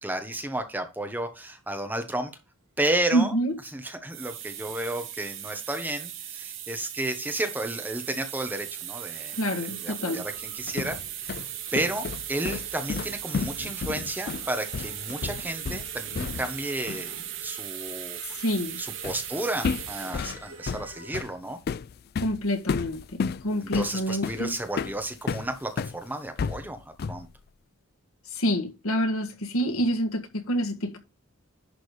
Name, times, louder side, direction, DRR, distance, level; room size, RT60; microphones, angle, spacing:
voice 1, 0.0-2.3 2.8-3.3 3.7-11.4 11.7-17.1 17.4-18.2 18.8-21.6 23.6-27.3, right 1 dB, 10° right, 1.2 m, -32 dB
voice 2, 3.1-3.5 9.3-10.2 18.3-18.8 22.2-24.5 28.3-31.0, equal, 90° left, 1.6 m, -27 dB
sound 1, 4.0-21.2, right 10 dB, 65° right, 1.9 m, -38 dB
sound 2, 10.4-16.6 16.9-17.1 19.0-19.3 19.6-26.0 26.4-27.3, left 5 dB, 45° left, 0.3 m, -32 dB
11.0 x 3.8 x 4.9 m
head